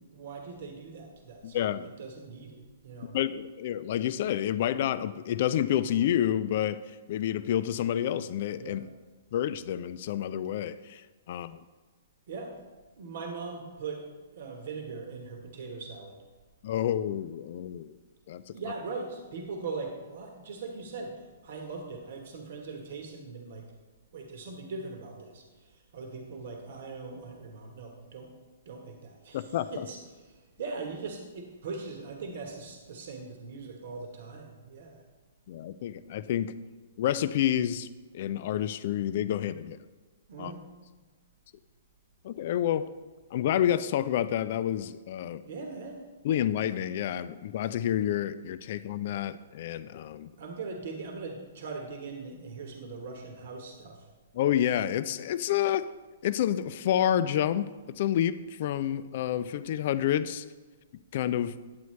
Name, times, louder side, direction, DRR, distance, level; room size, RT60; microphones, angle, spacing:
voice 1, 0.1-3.2 8.6-8.8 12.3-12.6 13.0-14.1 14.3-16.2 18.5-23.7 24.1-28.3 28.6-35.0 40.3-40.6 45.4-46.0 50.4-54.1, right 4 dB, 65° right, 3 dB, 1.2 m, -40 dB
voice 2, 1.4-1.9 3.1-8.8 9.3-11.0 11.3-11.6 16.6-18.0 18.3-18.5 29.3-29.8 35.5-36.5 37.0-37.9 38.1-39.8 40.4-40.5 42.2-42.9 43.3-45.4 46.2-50.3 54.4-55.8 56.2-60.4 61.1-61.5, left 11 dB, 55° left, 14 dB, 0.4 m, -29 dB
9.3 x 7.9 x 3.2 m, 1.3 s
hypercardioid pair, 135°, 0 cm